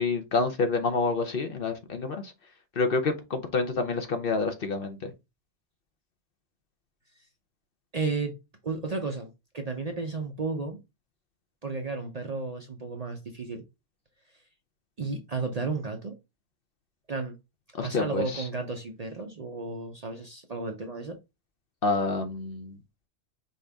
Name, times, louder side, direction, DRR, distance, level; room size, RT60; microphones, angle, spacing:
voice 1, 0.0-2.3 2.8-5.0 17.7-18.4 21.8-22.8, left 3 dB, 55° left, 0.9 m, -28 dB
voice 2, 7.9-8.3 8.6-10.8 11.6-13.6 15.0-16.2 17.1-17.3 17.8-21.2, right 3 dB, 40° right, 0.6 m, -33 dB
5.3 x 2.6 x 3.4 m
omnidirectional pair, 1.3 m